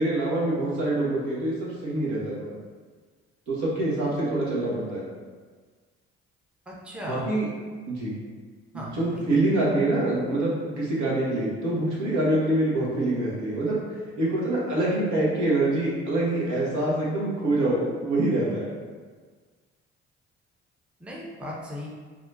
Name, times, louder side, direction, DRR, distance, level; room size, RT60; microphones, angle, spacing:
voice 1, 0.0-2.6 3.5-5.0 7.1-7.4 7.9-8.2 8.7-13.8 14.2-18.7, right 2 dB, 65° right, -5 dB, 1.1 m, -25 dB
voice 2, 6.7-7.2 8.7-9.4 21.0-21.9, equal, 5° right, -4 dB, 0.7 m, -37 dB
3.4 x 2.4 x 2.6 m, 1.5 s
hypercardioid pair, 50°, 32 cm